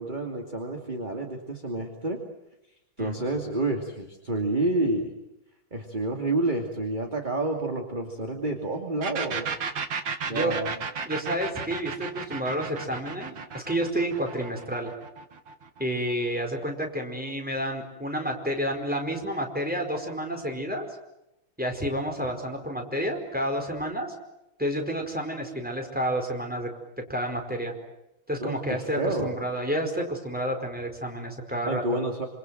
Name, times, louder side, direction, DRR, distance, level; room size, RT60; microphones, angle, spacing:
voice 1, 0.0-2.2 3.0-5.1 5.7-9.5 10.3-10.7 28.4-29.4 31.7-32.3, right 2 dB, 20° right, 3 dB, 2.7 m, -29 dB
sound 1, 9.0-16.5, right 5 dB, 70° right, 2.5 m, -34 dB
voice 2, 11.0-14.9 15.8-20.9 21.6-24.1 24.6-26.7 27.1-27.7 28.3-31.8, equal, 5° right, 3 dB, 4.7 m, -30 dB
27.5 x 27.0 x 7.8 m, 0.88 s
omnidirectional pair, 2.2 m